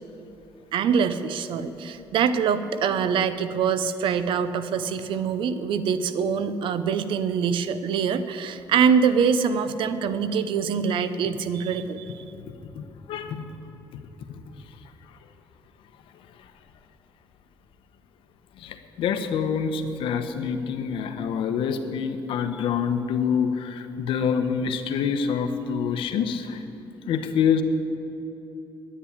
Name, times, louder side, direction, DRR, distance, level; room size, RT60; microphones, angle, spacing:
voice 1, 0.7-12.2, right 6 dB, 70° right, 12 dB, 0.7 m, -24 dB
voice 2, 12.2-13.5 13.9-14.1 14.5-14.6 18.6-26.6 27.0-27.6, left 7 dB, 80° left, 8 dB, 1.0 m, -26 dB
10.0 x 9.7 x 10.0 m, 3.0 s
cardioid pair, 130°, 9 cm